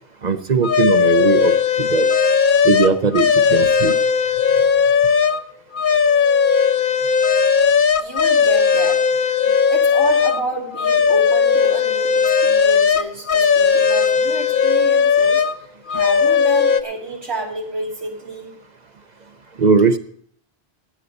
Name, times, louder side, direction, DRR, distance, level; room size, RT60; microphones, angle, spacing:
voice 1, 0.2-1.5 1.8-2.1 2.6-3.9 19.6-20.0, right 4 dB, 45° right, 8 dB, 0.8 m, -18 dB
sound 1, 0.6-5.4 5.7-10.4 10.8-15.5 15.9-16.8, left 6 dB, 55° left, 0.8 m, -16 dB
voice 2, 8.0-9.0 9.7-15.5 15.9-18.5, right 2 dB, 85° right, -2 dB, 3.2 m, -29 dB
16.5 x 8.4 x 5.3 m, 0.63 s
omnidirectional pair, 1.1 m